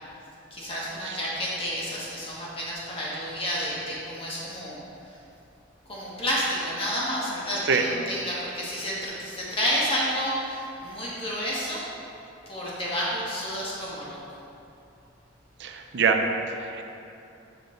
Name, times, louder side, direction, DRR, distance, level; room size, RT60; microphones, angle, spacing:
voice 1, 0.5-4.8 5.9-11.9 12.5-14.2, equal, 30° left, -6 dB, 1.8 m, -30 dB
voice 2, 15.6-16.2 16.6-16.8, right 6 dB, 65° right, 4 dB, 0.6 m, -24 dB
6.9 x 6.6 x 3.8 m, 2.7 s
head